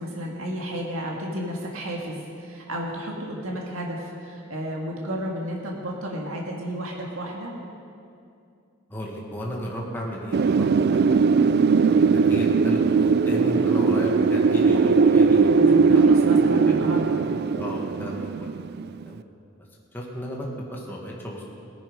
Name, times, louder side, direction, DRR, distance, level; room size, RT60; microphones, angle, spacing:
voice 1, 0.0-7.5 15.5-17.2, equal, 80° right, -1 dB, 1.9 m, -32 dB
voice 2, 8.9-10.7 11.1-11.5 12.0-15.8 16.3-16.8 17.4-18.6 19.1-19.2 19.9-21.4, equal, 10° left, -3 dB, 1.7 m, -34 dB
Wind, 10.3-19.0, right 5 dB, 50° right, 0.3 m, -19 dB
18.0 x 10.0 x 5.3 m, 2.5 s
head